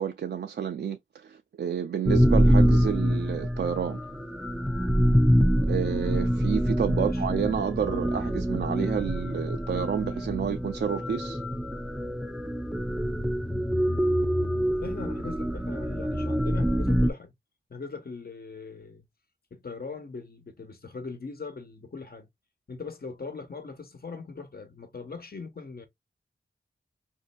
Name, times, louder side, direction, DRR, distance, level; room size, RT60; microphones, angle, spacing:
voice 1, 0.0-4.0 5.7-11.4, right 8 dB, 60° right, 0.4 m, -30 dB
sound 1, 2.1-17.1, equal, ahead, 0.4 m, -25 dB
voice 2, 6.9-7.2 14.8-17.3 17.7-19.1 19.5-22.3 22.7-25.9, left 4 dB, 55° left, 1.1 m, -40 dB
4.2 x 2.6 x 2.2 m
cardioid pair, 60°, 19 cm